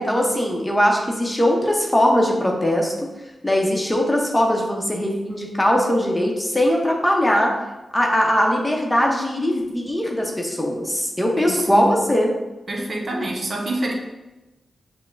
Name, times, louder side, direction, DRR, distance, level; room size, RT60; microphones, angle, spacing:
voice 1, 0.0-2.9 3.4-7.5 7.9-12.3, equal, 15° left, 0 dB, 0.8 m, -20 dB
voice 2, 11.4-11.9 12.7-13.9, right 1 dB, 55° right, -1 dB, 0.7 m, -26 dB
5.8 x 2.2 x 2.6 m, 1.1 s
cardioid pair, 45°, 0 cm